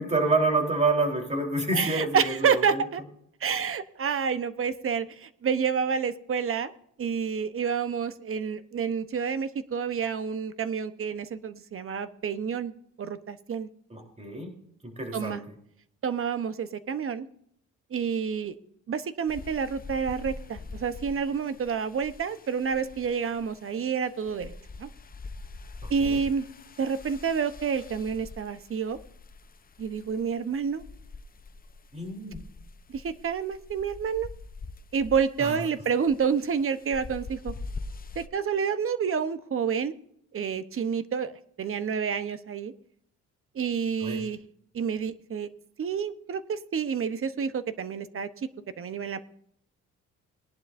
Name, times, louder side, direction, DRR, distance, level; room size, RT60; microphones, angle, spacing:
voice 1, 0.0-2.8 13.9-14.5 14.8-15.4 26.0-26.2 31.9-32.4 35.4-35.6 44.0-44.2, right 3 dB, 20° right, 2 dB, 3.9 m, -28 dB
voice 2, 1.7-3.0 3.4-6.7 7.0-12.7 13.0-13.7 15.1-15.4 16.0-17.3 17.9-18.5 18.9-24.5 24.8-24.9 25.9-26.5 26.8-29.0 29.8-30.8 32.9-34.3 34.9-37.5 38.1-39.9 40.3-41.3 41.6-42.7 43.5-44.4 44.7-45.5 45.8-48.5 48.8-49.2, right 6 dB, 45° right, 12 dB, 1.0 m, -29 dB
sound 1, 19.3-38.3, left 3 dB, 30° left, 0.8 m, -44 dB
19.5 x 11.0 x 2.7 m, 0.69 s
cardioid pair, 90°, 30 cm